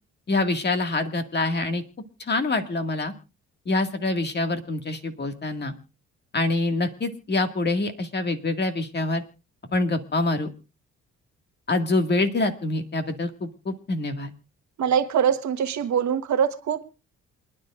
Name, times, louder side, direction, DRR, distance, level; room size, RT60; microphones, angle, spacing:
voice 1, 0.3-1.8 2.2-3.1 3.7-5.7 6.3-9.2 9.7-10.5 11.7-14.3, left 2 dB, 35° left, 6 dB, 2.0 m, -25 dB
voice 2, 14.8-16.8, right 8 dB, 65° right, 9 dB, 1.4 m, -23 dB
27.5 x 10.5 x 2.5 m, 0.31 s
cardioid pair, 90°, 30 cm